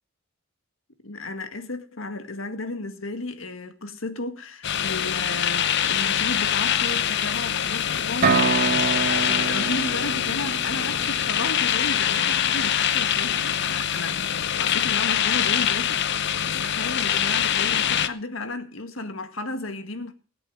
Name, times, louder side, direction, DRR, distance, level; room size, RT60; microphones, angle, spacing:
voice 1, 1.0-16.0 16.4-20.1, left 2 dB, 75° left, 1.8 m, -34 dB
sound 1, 4.6-18.1, left 9 dB, 55° left, 0.8 m, -24 dB
sound 2, 8.2-12.0, right 4 dB, 45° right, 2.5 m, -26 dB
18.0 x 8.4 x 6.3 m
head